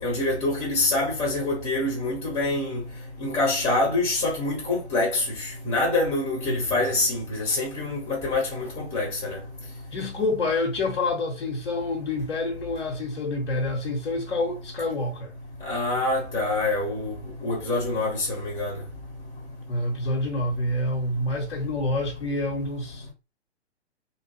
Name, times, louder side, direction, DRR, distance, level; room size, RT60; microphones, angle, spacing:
voice 1, 0.0-2.8 3.2-9.4 15.6-17.2 17.4-18.8, left 2 dB, 10° left, 0.9 m, -26 dB
voice 2, 6.5-6.8 9.9-15.3 19.7-23.1, left 2 dB, 60° left, 0.9 m, -27 dB
2.9 x 2.3 x 3.0 m
figure-of-eight pair, 120°, 34 cm